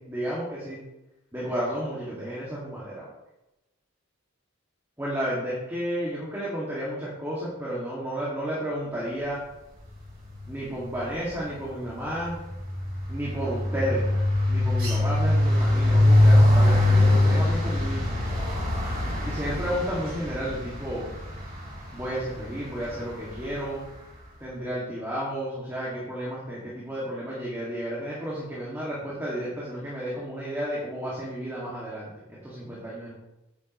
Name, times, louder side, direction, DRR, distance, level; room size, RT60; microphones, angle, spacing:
voice 1, 0.1-0.8 1.3-3.1 5.0-9.4 10.5-12.4 13.1-14.2 14.5-18.2 19.2-21.1 21.9-23.9 24.4-33.1, equal, 10° right, -7 dB, 2.2 m, -32 dB
sound 1, 10.1-10.5 10.8-23.9, left 1 dB, 40° right, 3.2 m, -23 dB
9.6 x 9.5 x 3.1 m, 0.96 s
head